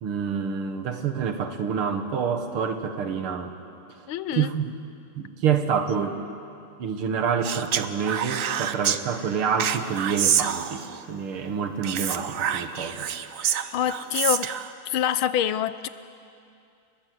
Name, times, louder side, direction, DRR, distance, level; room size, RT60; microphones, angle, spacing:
voice 1, 0.0-3.5 4.3-4.7 5.2-6.2 6.8-13.1, right 7 dB, 90° right, 6 dB, 2.4 m, -27 dB
voice 2, 4.1-4.5 13.7-14.5 14.8-15.9, left 10 dB, 75° left, 14 dB, 1.6 m, -25 dB
Speech, 7.4-9.0 9.6-11.0 11.8-14.7, right 9 dB, 60° right, 0.8 m, -27 dB
29.5 x 20.0 x 7.7 m, 2.5 s
omnidirectional pair, 2.3 m